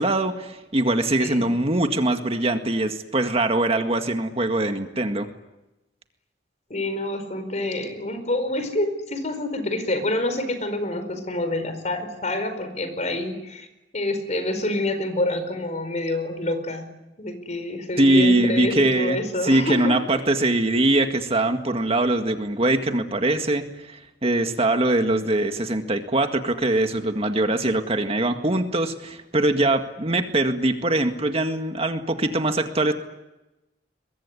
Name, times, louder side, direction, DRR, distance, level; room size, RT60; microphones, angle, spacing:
voice 1, 0.0-5.3 18.0-32.9, right 2 dB, 35° right, 6 dB, 1.9 m, -22 dB
voice 2, 1.2-1.5 6.7-13.7 13.9-16.9 17.2-20.0, left 1 dB, 40° left, 10 dB, 4.9 m, -27 dB
23.5 x 22.5 x 10.0 m, 0.97 s
head